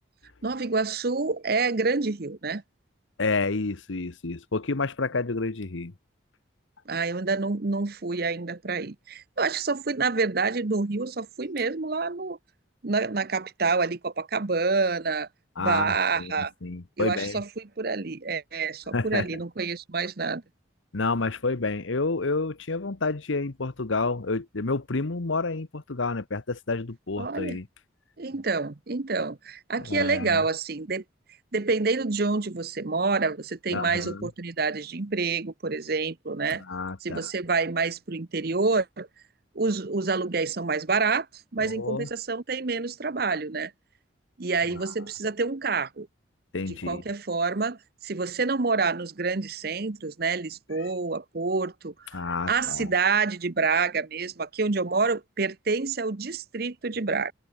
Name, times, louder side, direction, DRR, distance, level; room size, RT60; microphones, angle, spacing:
voice 1, 0.4-2.6 6.9-12.4 12.8-15.3 15.6-16.5 17.0-20.4 27.2-27.6 28.2-31.0 31.5-36.6 37.0-39.1 39.5-41.3 41.5-43.7 44.4-46.1 46.7-47.8 48.0-52.2 52.5-57.3, right 4 dB, 50° right, 0.9 m, -27 dB
voice 2, 3.2-5.9 15.6-17.4 18.9-19.3 20.9-27.7 29.9-30.4 33.7-34.3 36.7-37.3 41.6-42.1 44.7-44.8 46.5-47.0 52.1-52.9, left 3 dB, 80° left, 1.1 m, -29 dB
head